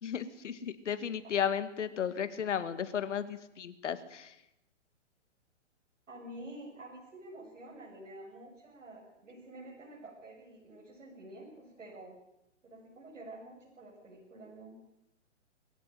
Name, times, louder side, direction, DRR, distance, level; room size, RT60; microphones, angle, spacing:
voice 1, 0.0-4.3, left 8 dB, 70° left, 12 dB, 2.3 m, -34 dB
voice 2, 6.1-12.2 12.6-14.7, right 1 dB, 85° right, -3 dB, 7.7 m, -49 dB
22.5 x 15.5 x 9.3 m, 0.85 s
hypercardioid pair, 145°, 37 cm